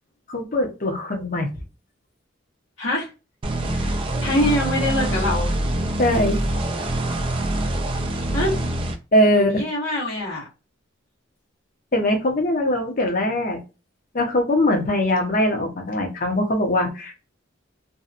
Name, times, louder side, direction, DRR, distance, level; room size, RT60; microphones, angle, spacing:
voice 1, 0.3-1.5 6.0-6.4 9.1-9.6 11.9-13.6 14.1-17.1, left 1 dB, 45° left, 0.7 m, -21 dB
voice 2, 2.8-3.1 3.7-3.9 4.2-5.5 8.3-8.6 9.3-10.4, left 1 dB, 75° left, 1.1 m, -24 dB
sound 1, 3.4-8.9, right 1 dB, 25° right, 0.3 m, -24 dB
2.7 x 2.3 x 2.4 m
head